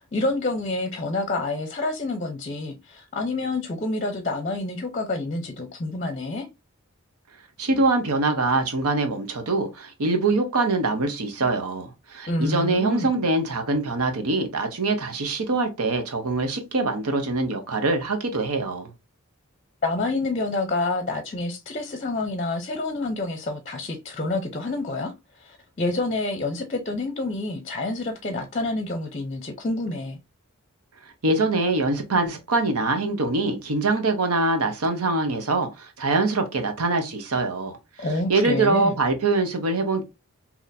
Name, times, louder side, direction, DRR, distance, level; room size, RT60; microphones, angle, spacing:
voice 1, 0.0-6.5 12.3-13.1 19.8-25.1 25.4-30.2 38.0-38.9, left 2 dB, 35° left, 0.6 m, -28 dB
voice 2, 7.6-18.9 31.2-40.0, right 3 dB, 90° right, 0.8 m, -24 dB
4.1 x 2.8 x 2.6 m
head